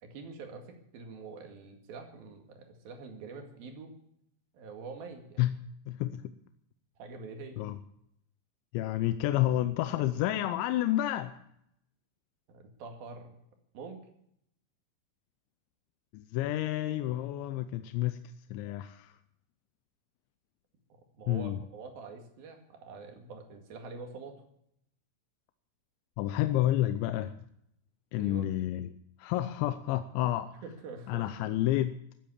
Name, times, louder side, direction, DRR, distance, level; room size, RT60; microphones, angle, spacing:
voice 1, 0.0-3.9 4.5-5.5 7.0-7.6 12.5-13.3 13.7-14.0 21.2-24.3 28.2-28.5 30.6-31.3, right 4 dB, 55° right, 4 dB, 3.5 m, -45 dB
voice 2, 5.9-6.3 7.6-7.8 8.7-11.3 16.1-18.2 18.5-19.1 21.3-21.6 26.2-27.3 28.1-28.9 29.2-30.5 31.1-31.9, left 14 dB, 80° left, 10 dB, 2.8 m, -30 dB
15.0 x 9.1 x 8.5 m, 0.74 s
omnidirectional pair, 5.6 m